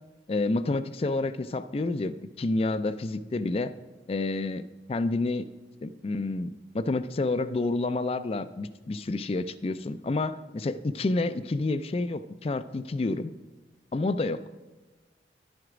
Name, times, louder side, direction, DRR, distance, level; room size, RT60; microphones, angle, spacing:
voice 1, 0.3-3.7 4.1-5.5 5.8-13.3 13.9-14.4, left 2 dB, 35° left, 13 dB, 0.3 m, -29 dB
11.0 x 7.8 x 5.0 m, 1.2 s
head